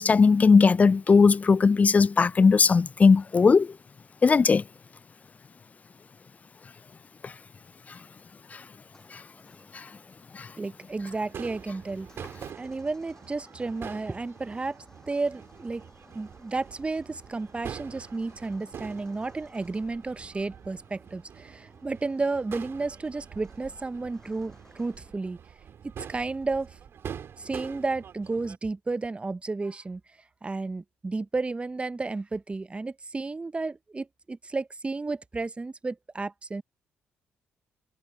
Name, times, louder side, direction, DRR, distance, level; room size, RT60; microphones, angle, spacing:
voice 1, 0.0-3.7 4.2-4.6 7.2-7.3 9.7-9.8 10.3-10.5, left 5 dB, 30° left, 0.3 m, -19 dB
sound 1, 8.9-25.1, left 1 dB, 10° left, 7.5 m, -57 dB
voice 2, 10.6-12.1 12.5-15.8 16.1-25.4 26.1-26.8 27.4-30.0 30.4-36.6, right 3 dB, 25° right, 0.7 m, -32 dB
Crowd / Fireworks, 11.3-28.6, right 8 dB, 60° right, 2.8 m, -45 dB
supercardioid pair, 55°, 5 cm